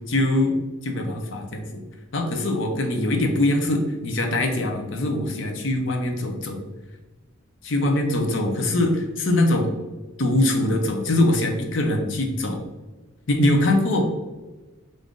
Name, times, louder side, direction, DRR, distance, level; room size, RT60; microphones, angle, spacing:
voice 1, 0.1-0.5 0.8-1.8 2.1-6.6 7.6-9.7 10.2-12.6 13.3-14.0, left 1 dB, 65° left, 3 dB, 0.6 m, -22 dB
3.6 x 2.5 x 3.6 m, 1.2 s
head